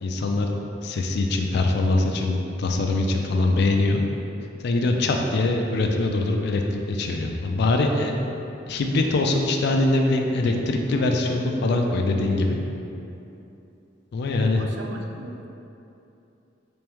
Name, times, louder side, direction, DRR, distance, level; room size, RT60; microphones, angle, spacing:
voice 1, 0.0-0.5 0.8-4.0 4.6-6.6 6.9-8.1 8.7-12.6 14.1-14.6, left 2 dB, 60° left, 2 dB, 0.4 m, -23 dB
voice 2, 14.6-15.5, right 2 dB, 70° right, 2 dB, 0.4 m, -39 dB
3.5 x 3.4 x 3.0 m, 2.8 s
head